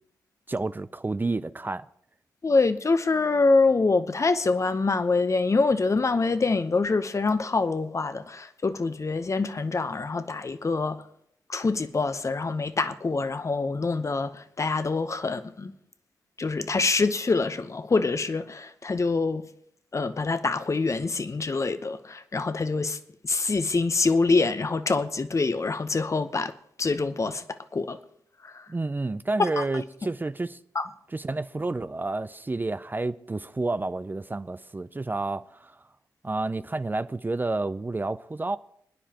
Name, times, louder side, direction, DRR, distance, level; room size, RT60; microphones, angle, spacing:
voice 1, 0.5-1.9 28.7-30.6 31.1-35.8 36.2-38.6, right 2 dB, 25° right, 0.5 m, -30 dB
voice 2, 2.4-11.0 11.5-15.7 16.4-19.5 19.9-23.0 23.2-26.5 26.8-28.0 28.4-28.6 29.6-29.8 30.7-30.9, left 3 dB, 40° left, 0.9 m, -25 dB
26.5 x 9.9 x 3.0 m
supercardioid pair, 45°, 8 cm